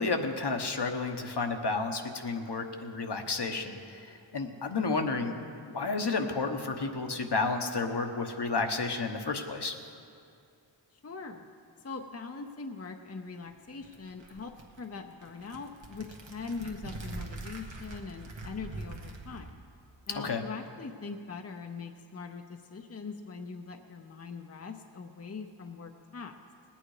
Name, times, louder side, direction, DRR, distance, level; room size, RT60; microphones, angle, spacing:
voice 1, 0.0-5.3 5.7-9.7 20.1-20.4, left 3 dB, 60° left, 4 dB, 1.1 m, -31 dB
voice 2, 11.0-11.5 11.8-19.6 20.1-26.3, left 4 dB, 30° left, 5 dB, 0.7 m, -42 dB
sound 1, 13.5-19.5, right 2 dB, 70° right, 1.2 m, -44 dB
19.5 x 8.9 x 4.9 m, 2.5 s
wide cardioid pair, 55°, 47 cm